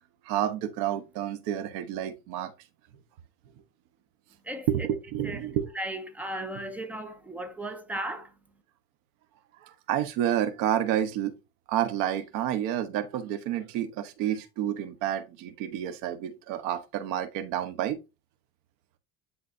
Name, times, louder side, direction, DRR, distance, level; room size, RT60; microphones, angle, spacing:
voice 1, 0.2-2.5 4.7-5.7 9.6-11.3 11.7-18.0, right 11 dB, 85° right, 1.2 m, -29 dB
voice 2, 5.7-8.3, right 1 dB, 5° right, 1.2 m, -35 dB
10.0 x 4.1 x 2.7 m
cardioid pair, 130°, 29 cm